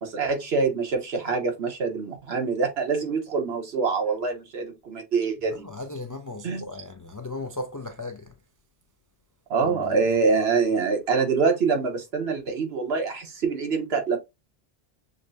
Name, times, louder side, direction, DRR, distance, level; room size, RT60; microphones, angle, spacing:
voice 1, 0.0-5.7 6.4-6.6 9.5-14.2, right 4 dB, 75° right, 1.3 m, -25 dB
voice 2, 5.5-8.3 9.6-10.1 10.4-10.5, left 2 dB, 35° left, 0.3 m, -37 dB
6.4 x 2.1 x 2.5 m
omnidirectional pair, 1.1 m